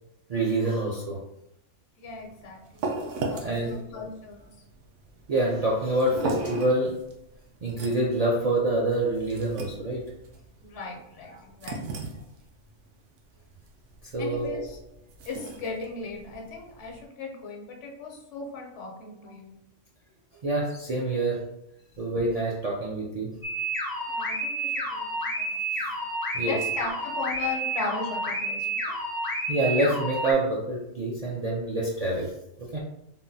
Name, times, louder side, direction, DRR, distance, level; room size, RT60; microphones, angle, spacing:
voice 1, 0.3-1.2 3.4-3.8 5.3-7.1 7.6-10.1 11.3-11.4 14.0-14.6 20.4-21.5 22.0-23.4 26.3-26.6 29.5-32.3 32.6-32.8, right 2 dB, 60° right, -4 dB, 0.4 m, -26 dB
voice 2, 2.0-2.9 3.2-4.5 10.6-12.1 14.2-14.8 15.2-19.5 24.1-26.0 26.5-29.0, left 3 dB, 85° left, 0 dB, 1.0 m, -37 dB
sound 1, 2.1-17.0, right 2 dB, 90° right, 0.9 m, -38 dB
sound 2, 23.4-30.3, right 1 dB, 30° left, 0.4 m, -30 dB
3.6 x 2.2 x 2.6 m, 0.81 s
omnidirectional pair, 1.2 m